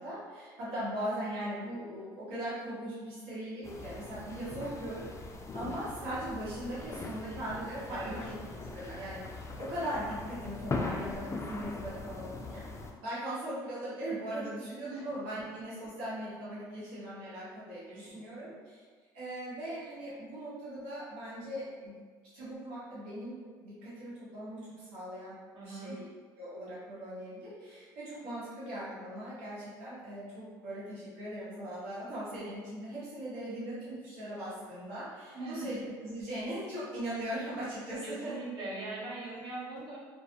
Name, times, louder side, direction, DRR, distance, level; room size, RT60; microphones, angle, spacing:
voice 1, 0.0-5.1 5.5-12.6 13.0-18.8 19.1-22.0 22.3-25.4 25.6-26.0 26.4-38.4, right 1 dB, 90° right, -10 dB, 1.1 m, -39 dB
sound 1, 3.6-12.9, left 3 dB, 30° left, 0.4 m, -41 dB
voice 2, 17.9-18.5 25.5-26.0 35.3-35.8 38.0-40.0, right 2 dB, 60° right, -6 dB, 0.9 m, -41 dB
2.3 x 2.2 x 2.9 m, 1.6 s
supercardioid pair, 75°, 9 cm